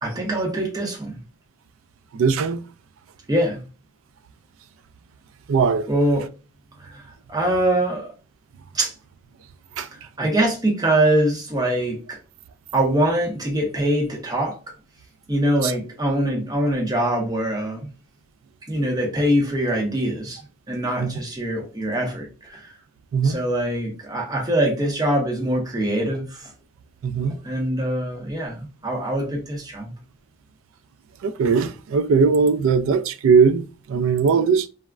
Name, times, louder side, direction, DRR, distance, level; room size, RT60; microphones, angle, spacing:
voice 1, 0.0-1.2 3.3-3.6 5.9-6.3 6.8-8.1 8.7-8.9 10.0-12.2 12.7-14.6 15.3-17.9 18.7-20.4 20.7-22.7 23.2-26.5 27.4-29.9, right 1 dB, 20° right, 0.6 m, -23 dB
voice 2, 2.1-2.6 5.5-5.9 9.8-9.9 15.6-15.7 21.0-21.1 23.1-23.4 27.0-27.3 31.2-34.7, right 5 dB, 75° right, 0.3 m, -19 dB
3.3 x 2.0 x 2.3 m
head